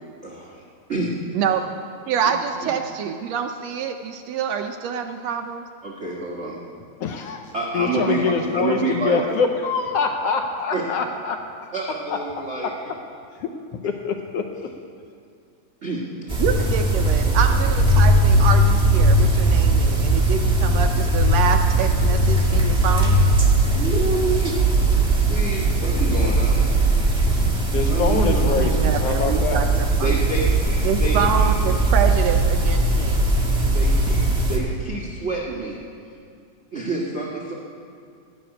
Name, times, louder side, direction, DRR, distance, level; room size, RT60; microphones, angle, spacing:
voice 1, 0.2-0.6 0.9-1.1 2.2-2.3 2.6-2.7 5.8-6.6 7.5-9.2 10.7-10.8 11.7-12.7 15.8-16.4 17.2-17.7 23.7-24.5 25.2-26.8 27.9-28.8 30.0-31.5 33.7-35.8 36.7-37.5, right 3 dB, 55° right, -4 dB, 0.7 m, -28 dB
voice 2, 1.3-1.6 2.1-5.6 16.4-23.2 28.0-30.1 30.8-33.2, right 7 dB, 80° right, 5 dB, 1.5 m, -26 dB
voice 3, 7.0-11.7 12.1-12.7 13.4-13.5 13.8-14.5 27.7-29.7, left 5 dB, 75° left, 4 dB, 1.4 m, -25 dB
sound 1, 16.3-34.6, right 2 dB, 5° right, 1.0 m, -19 dB
15.0 x 6.2 x 9.8 m, 2.4 s
omnidirectional pair, 3.6 m